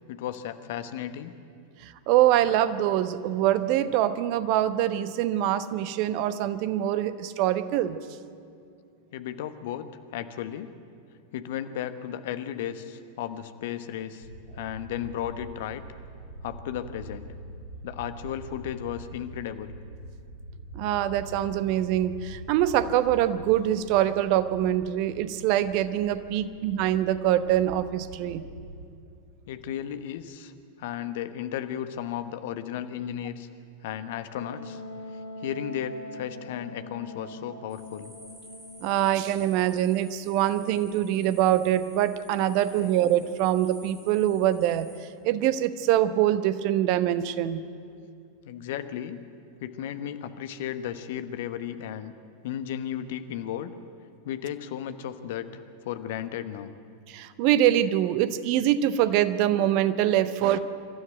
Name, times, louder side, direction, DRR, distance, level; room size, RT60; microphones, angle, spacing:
voice 1, 0.1-1.3 9.1-9.8 10.1-10.7 11.3-14.3 14.5-15.8 16.4-17.3 17.8-19.8 29.5-30.5 30.8-33.5 33.8-34.8 35.4-38.1 48.4-49.2 49.6-52.1 52.4-53.7 54.2-56.7, left 10 dB, 55° left, 10 dB, 1.2 m, -34 dB
voice 2, 1.8-8.0 20.7-28.4 38.8-44.9 45.2-47.6 57.1-60.6, right 12 dB, 45° right, 13 dB, 1.0 m, -24 dB
sound 1, 14.2-28.9, right 1 dB, 85° right, 1.5 m, -44 dB
Wind instrument woodwind instrument, 34.3-39.8, left 1 dB, 75° left, 2.9 m, -42 dB
sound 2, 37.7-45.0, right 1 dB, 25° right, 7.7 m, -52 dB
26.5 x 13.0 x 9.1 m, 2.4 s
figure-of-eight pair, 90°, 0 cm